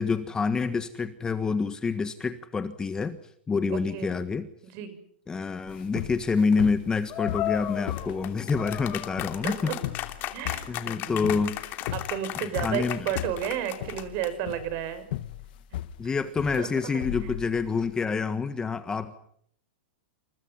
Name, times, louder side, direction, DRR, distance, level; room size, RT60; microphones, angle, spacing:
voice 1, 0.0-3.2 3.5-4.5 5.3-9.7 10.7-11.6 12.4-13.0 16.0-19.2, left 5 dB, 10° left, 10 dB, 1.5 m, -27 dB
voice 2, 3.7-4.1 4.6-5.0 9.4-9.8 10.3-11.4 11.9-15.1 16.6-16.7, right 10 dB, 40° right, 12 dB, 7.0 m, -32 dB
sound 1, 5.7-17.9, left 13 dB, 55° left, 1.7 m, -37 dB
sound 2, 7.1-14.5, left 15 dB, 35° left, 2.9 m, -35 dB
29.0 x 28.5 x 5.8 m, 0.66 s
supercardioid pair, 150°, 6 cm